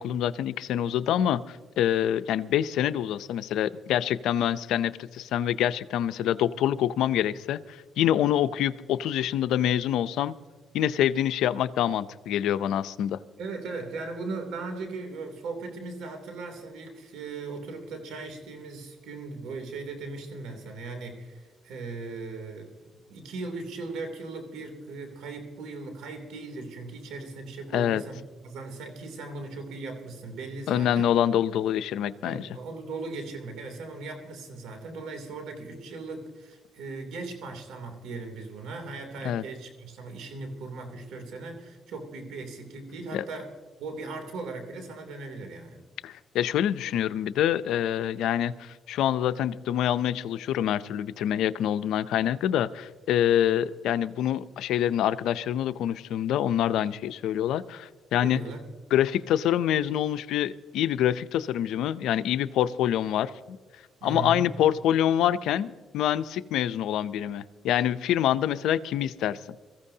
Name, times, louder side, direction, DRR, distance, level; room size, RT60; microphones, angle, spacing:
voice 1, 0.0-10.3 10.7-13.2 27.7-28.0 30.7-32.5 39.2-39.4 43.1-43.2 46.0-58.4 58.9-63.6 64.0-69.4, left 11 dB, 85° left, 13 dB, 0.5 m, -26 dB
voice 2, 13.4-31.1 32.2-43.5 43.8-45.8 58.2-58.6 64.0-64.5, right 3 dB, 85° right, 5 dB, 2.8 m, -38 dB
23.0 x 15.0 x 2.8 m, 1.4 s
cardioid pair, 90°, 0 cm